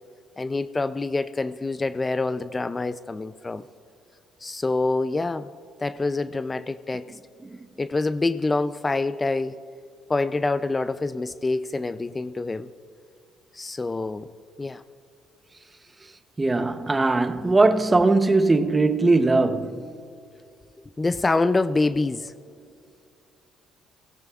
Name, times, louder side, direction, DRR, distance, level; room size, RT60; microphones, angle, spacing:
voice 1, 0.4-3.6 4.4-5.5 5.8-7.2 7.8-9.5 10.1-12.7 13.5-14.3 14.6-14.8 16.6-16.7 21.0-22.3, left 3 dB, 25° left, 0.4 m, -26 dB
voice 2, 16.4-19.8, right 3 dB, 20° right, 0.7 m, -20 dB
17.5 x 16.0 x 2.4 m
supercardioid pair, 75°, 0 cm